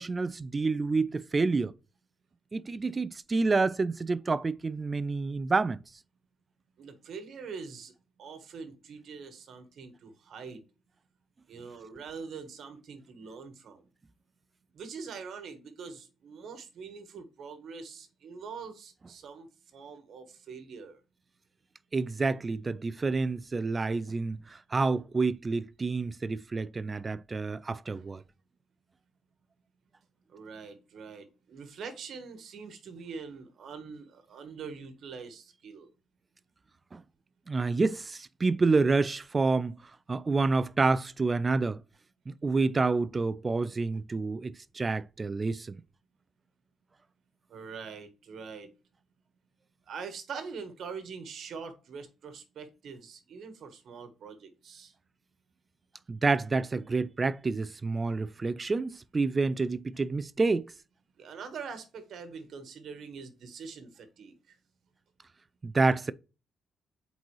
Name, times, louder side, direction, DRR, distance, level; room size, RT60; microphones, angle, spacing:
voice 1, 0.0-1.7 2.5-5.8 21.9-28.2 36.9-37.0 37.5-39.8 40.1-41.8 42.3-45.8 56.1-60.7 65.6-66.1, right 3 dB, 20° right, 0.4 m, -28 dB
voice 2, 6.8-7.9 8.2-10.6 11.5-13.8 14.7-19.5 19.7-21.0 30.3-35.9 47.5-48.7 49.9-54.9 61.2-64.6, right 5 dB, 55° right, 1.3 m, -44 dB
8.2 x 4.0 x 3.1 m
cardioid pair, 145°, 0 cm